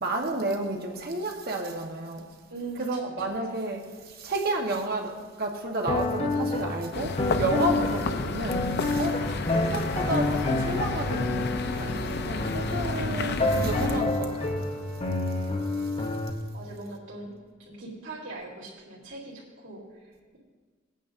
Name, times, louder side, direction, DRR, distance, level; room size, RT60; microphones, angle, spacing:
voice 1, 0.0-2.3 2.8-9.2 9.5-14.5 15.8-15.9, right 2 dB, 55° right, 1.2 m, -31 dB
voice 2, 2.5-3.4 9.2-9.3 13.0-13.7 16.5-17.3 17.7-20.4, right 2 dB, 85° right, 2.7 m, -41 dB
sound 1, 5.9-16.3, left 2 dB, 30° left, 0.9 m, -29 dB
sound 2, 6.9-14.0, left 3 dB, 60° left, 0.6 m, -31 dB
19.0 x 9.2 x 2.6 m
head